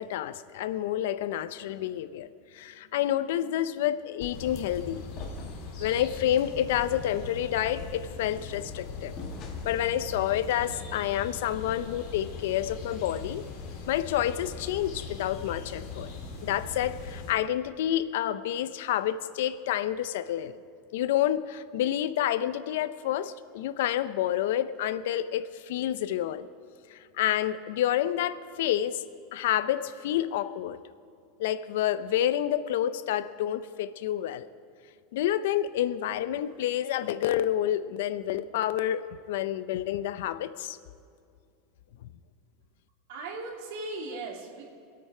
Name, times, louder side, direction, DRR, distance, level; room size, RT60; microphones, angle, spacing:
voice 1, 0.0-5.1 5.8-9.2 9.6-13.4 13.9-16.1 16.4-20.5 20.9-26.5 26.9-29.0 29.3-30.8 31.4-34.5 35.1-40.8, left 11 dB, 75° left, 14 dB, 0.5 m, -29 dB
sound 1, 4.2-4.6 5.1-5.8 6.1-6.3 6.7-7.0 7.7-8.4 9.2-9.9, left 3 dB, 35° left, 1.7 m, -43 dB
sound 2, 4.3-17.3, left 4 dB, 55° left, 2.2 m, -40 dB
voice 2, 43.1-44.7, right 2 dB, 70° right, -1 dB, 2.4 m, -38 dB
22.0 x 8.7 x 4.8 m, 2.3 s
supercardioid pair, 155°, 0 cm